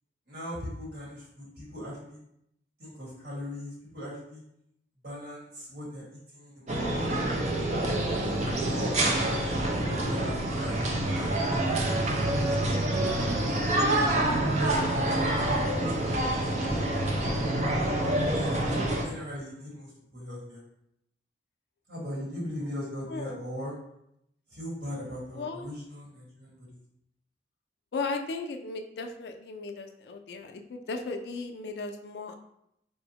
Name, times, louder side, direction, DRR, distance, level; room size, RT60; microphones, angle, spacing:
voice 1, 0.3-2.2 2.8-4.4 5.0-7.9 8.7-13.7 14.6-17.5 18.3-18.7 19.0-20.6 21.9-23.7 24.5-26.8, equal, 75° right, -5 dB, 1.4 m, -40 dB
sound 1, 6.7-19.0, right 1 dB, 40° right, 0.4 m, -27 dB
voice 2, 23.1-23.4 25.3-25.7 27.9-32.4, left 3 dB, 70° left, 5 dB, 0.3 m, -36 dB
4.3 x 2.0 x 2.8 m, 0.77 s
head